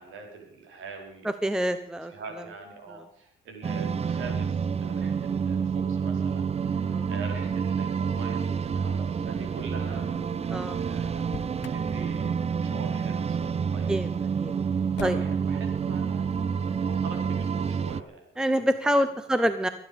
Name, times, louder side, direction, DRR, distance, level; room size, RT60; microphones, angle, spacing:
voice 1, 0.0-1.3 2.0-10.2 10.7-11.4 11.7-14.0 15.0-18.5 19.2-19.5, right 4 dB, 85° right, 2 dB, 4.4 m, -43 dB
voice 2, 1.2-2.1 6.8-7.1 10.5-10.8 13.9-14.1 14.4-14.5 15.0-15.2 18.4-19.7, equal, 5° right, 11 dB, 0.8 m, -26 dB
sound 1, 3.6-18.0, right 6 dB, 30° right, 0.5 m, -28 dB
Motor vehicle (road), 11.2-11.9 14.9-15.5, left 10 dB, 65° left, 0.9 m, -41 dB
23.0 x 9.4 x 5.2 m, 0.70 s
cardioid pair, 90°, 20 cm